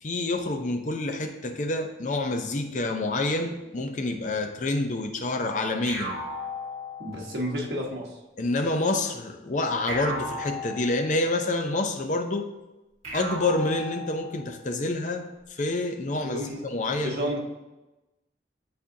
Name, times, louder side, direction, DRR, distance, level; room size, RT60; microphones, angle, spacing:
voice 1, 0.0-6.2 8.4-12.5 13.1-17.4, left 2 dB, 40° left, 6 dB, 0.5 m, -28 dB
sound 1, 5.9-7.5 9.9-11.5 13.0-14.5, left 1 dB, 35° right, 1.6 m, -35 dB
voice 2, 7.0-8.2 16.2-16.6 17.0-17.4, equal, 60° right, -2 dB, 1.2 m, -31 dB
8.5 x 4.3 x 2.7 m, 1.0 s
head